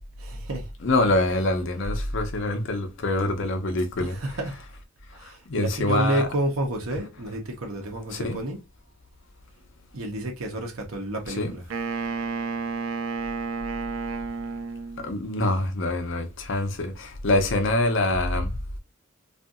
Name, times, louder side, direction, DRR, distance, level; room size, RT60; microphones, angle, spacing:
voice 1, 0.2-0.7 3.7-4.6 5.1-8.6 9.9-11.6, right 1 dB, 85° right, 0.9 m, -30 dB
voice 2, 0.8-4.2 5.5-6.3 8.1-8.4 11.4-11.5 15.0-18.5, left 2 dB, 60° left, 0.6 m, -25 dB
Wind instrument woodwind instrument, 11.7-15.2, right 4 dB, 65° right, 0.4 m, -31 dB
2.7 x 2.5 x 2.4 m
head